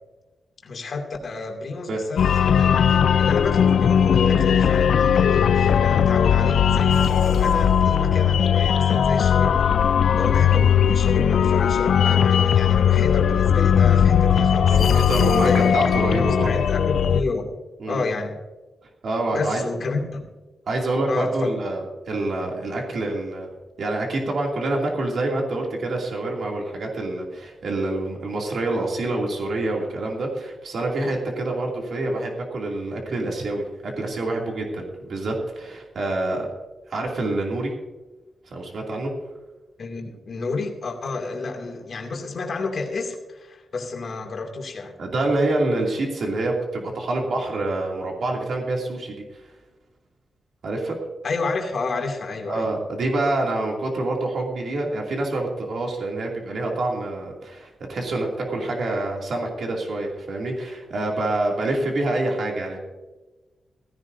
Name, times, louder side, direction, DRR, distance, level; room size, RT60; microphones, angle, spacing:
voice 1, 0.6-14.9 15.2-17.5 17.9-18.4 19.3-20.3 21.1-21.5 39.8-45.0 51.2-52.7, left 3 dB, 50° left, 2 dB, 2.5 m, -30 dB
sound 1, 2.2-17.2, left 8 dB, 75° left, 0.4 m, -18 dB
voice 2, 14.7-16.5 17.8-18.0 19.0-19.6 20.7-21.8 22.1-23.5 23.8-36.5 36.9-37.7 38.5-39.1 45.0-49.4 50.6-51.0 52.5-62.8, right 2 dB, 60° right, -1 dB, 2.6 m, -26 dB
16.5 x 16.0 x 2.7 m, 1.2 s
wide cardioid pair, 150°, 0 cm